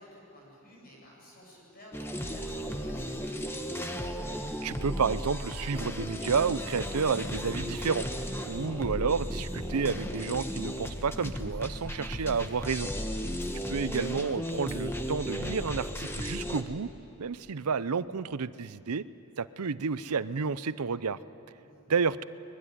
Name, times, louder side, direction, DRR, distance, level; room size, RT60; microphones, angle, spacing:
voice 1, 0.0-3.2 13.3-13.9 21.6-21.9, equal, 40° left, -2 dB, 7.3 m, -53 dB
sound 1, 1.9-16.6, equal, 10° left, 1.1 m, -35 dB
voice 2, 4.6-8.1 8.4-12.9 13.7-16.9 17.2-19.0 19.4-21.2 21.9-22.2, right 5 dB, 90° right, 16 dB, 0.6 m, -30 dB
23.5 x 21.0 x 9.9 m, 2.8 s
head